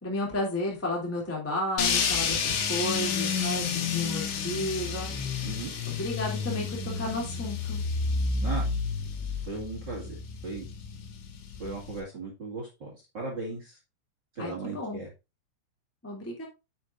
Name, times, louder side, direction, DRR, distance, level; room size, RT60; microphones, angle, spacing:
voice 1, 0.0-5.1 5.9-7.8 14.4-15.0 16.0-16.4, left 1 dB, 10° left, -2 dB, 0.7 m, -32 dB
sound 1, 1.8-12.0, left 5 dB, 75° left, 3.9 m, -30 dB
voice 2, 9.4-10.2 10.4-10.7 11.6-13.8 14.3-15.1, right 3 dB, 90° right, -1 dB, 0.9 m, -37 dB
9.3 x 7.7 x 2.5 m, 0.27 s
omnidirectional pair, 5.8 m